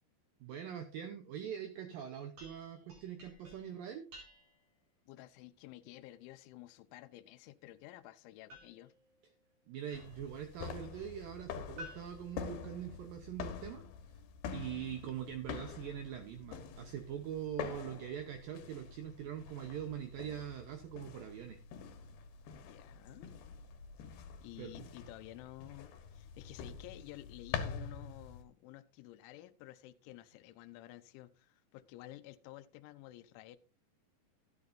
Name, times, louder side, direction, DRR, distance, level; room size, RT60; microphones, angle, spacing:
voice 1, 0.4-4.1 9.7-13.8 14.5-21.6 24.6-24.9, right 9 dB, 90° right, 1.9 m, -43 dB
sound 1, 2.4-4.8 8.5-10.4 11.8-13.2, left 1 dB, 45° right, 5.8 m, -55 dB
voice 2, 5.1-8.9 22.6-23.3 24.4-33.6, left 16 dB, 85° left, 3.1 m, -52 dB
sound 2, 9.9-28.4, left 7 dB, 70° left, 2.9 m, -46 dB
13.5 x 11.0 x 2.6 m
omnidirectional pair, 5.3 m